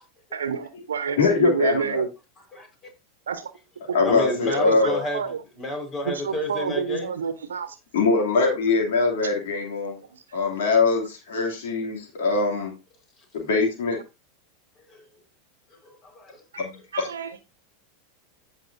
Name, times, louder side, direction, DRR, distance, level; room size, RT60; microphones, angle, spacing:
voice 1, 0.3-2.1 3.3-3.5 3.9-4.0 4.5-5.4 6.0-7.8 10.1-10.2 16.9-17.5, right 6 dB, 80° right, 1.0 m, -29 dB
voice 2, 1.2-2.0 3.9-5.0 7.9-10.0 10.3-12.7 13.3-14.0 16.6-17.1, left 4 dB, 70° left, 3.0 m, -22 dB
voice 3, 4.0-5.3 5.6-7.1 14.9-15.0 15.7-16.4, left 1 dB, 30° left, 4.9 m, -30 dB
15.0 x 5.7 x 2.7 m
hypercardioid pair, 95°, 0 cm